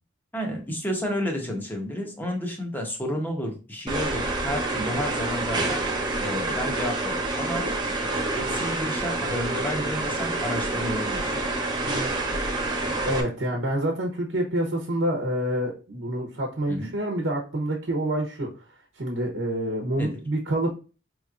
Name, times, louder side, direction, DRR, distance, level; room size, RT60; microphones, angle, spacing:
voice 1, 0.3-5.8 6.2-7.7 8.3-11.2 16.7-16.9 20.0-20.1, equal, 10° left, 2 dB, 1.0 m, -31 dB
sound 1, 3.9-13.2, right 2 dB, 25° right, 0.7 m, -27 dB
voice 2, 13.0-18.6 18.9-20.7, right 1 dB, 90° right, 1 dB, 0.9 m, -27 dB
5.4 x 3.1 x 2.4 m, 0.34 s
head